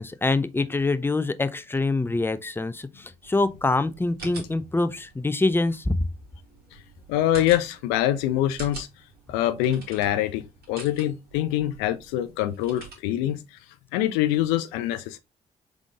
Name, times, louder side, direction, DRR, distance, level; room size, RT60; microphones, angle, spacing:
voice 1, 0.0-5.9, left 2 dB, 15° left, 0.6 m, -25 dB
sound 1, 3.2-12.9, right 4 dB, 65° right, 2.1 m, -46 dB
voice 2, 7.1-8.9 9.3-13.4 13.9-15.2, left 13 dB, 80° left, 0.4 m, -24 dB
3.9 x 3.7 x 3.5 m
hypercardioid pair, 45°, 17 cm